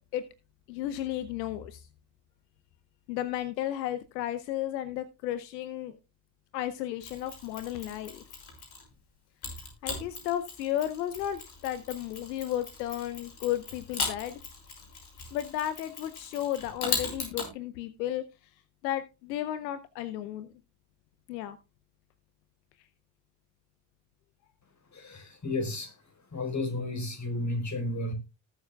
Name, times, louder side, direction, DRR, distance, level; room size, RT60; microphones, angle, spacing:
voice 1, 0.7-1.9 3.1-6.0 6.5-8.2 9.8-14.4 15.3-18.2 18.8-20.5 21.3-21.6, left 12 dB, 80° left, 0.8 m, -33 dB
Mechanisms, 7.0-8.9 9.4-17.5, left 4 dB, 50° left, 5.6 m, -38 dB
voice 2, 24.9-25.9 26.3-28.1, left 2 dB, 35° left, 4.3 m, -32 dB
18.5 x 7.4 x 2.3 m
hypercardioid pair, 45°, 49 cm